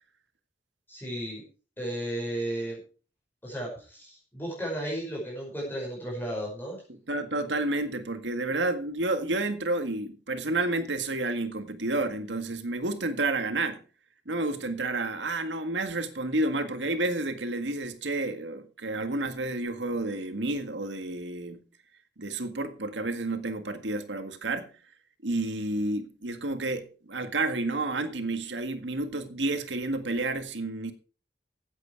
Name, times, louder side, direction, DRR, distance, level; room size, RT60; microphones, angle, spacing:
voice 1, 0.9-1.4 1.8-2.8 3.4-6.8, right 1 dB, 10° left, 5.4 m, -34 dB
voice 2, 6.9-13.8 14.3-21.6 22.2-24.7 25.2-30.9, right 2 dB, 85° right, 1.8 m, -30 dB
16.0 x 8.3 x 4.7 m
head